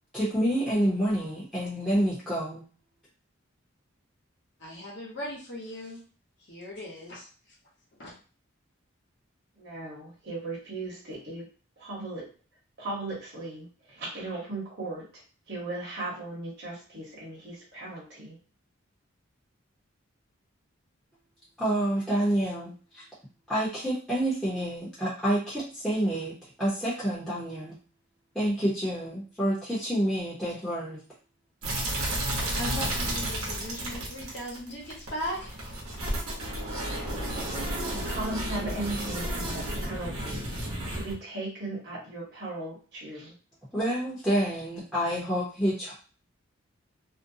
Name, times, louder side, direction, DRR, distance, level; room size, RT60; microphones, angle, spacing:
voice 1, 0.1-2.6 21.6-23.0 23.5-27.7 28.3-31.0 43.7-45.9, right 1 dB, 5° left, -10 dB, 0.7 m, -28 dB
voice 2, 4.6-6.0 6.5-7.3 8.0-8.1 32.5-35.5, equal, 55° left, -3 dB, 1.0 m, -38 dB
voice 3, 9.6-11.5 11.8-12.3 12.8-15.2 15.5-18.4 37.9-40.4 40.9-43.3, right 2 dB, 50° right, -5 dB, 1.0 m, -37 dB
sound 1, 31.6-41.1, right 1 dB, 80° right, 0.9 m, -32 dB
2.6 x 2.2 x 2.6 m, 0.38 s
head